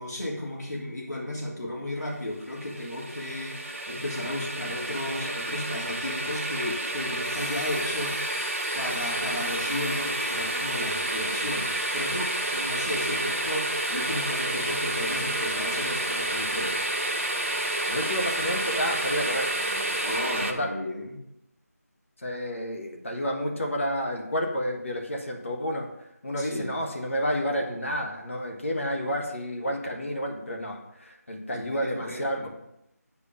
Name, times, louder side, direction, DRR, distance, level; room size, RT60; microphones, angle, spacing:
voice 1, 0.0-8.2 8.7-16.8 20.0-21.2 26.4-26.8 31.5-32.5, left 1 dB, 90° left, -3 dB, 3.1 m, -34 dB
sound 1, 2.4-20.5, right 2 dB, 50° right, 1.0 m, -30 dB
sound 2, 7.2-20.2, left 1 dB, 15° left, 1.4 m, -38 dB
voice 2, 17.9-19.9 20.4-20.7 22.2-25.9 26.2-32.5, equal, 50° left, 2 dB, 1.5 m, -30 dB
8.4 x 4.9 x 5.3 m, 0.83 s
figure-of-eight pair, 175°, 9 cm